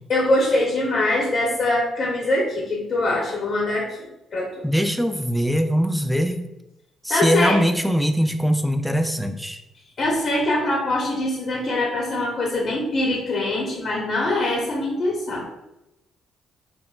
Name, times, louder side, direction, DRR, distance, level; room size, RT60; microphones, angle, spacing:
voice 1, 0.1-4.6 7.1-7.6 10.0-15.4, left 2 dB, 50° left, -2 dB, 0.8 m, -23 dB
voice 2, 4.6-6.4 7.0-9.6, equal, ahead, 7 dB, 0.3 m, -22 dB
5.4 x 2.1 x 2.3 m, 0.91 s
cardioid pair, 90°, 0 cm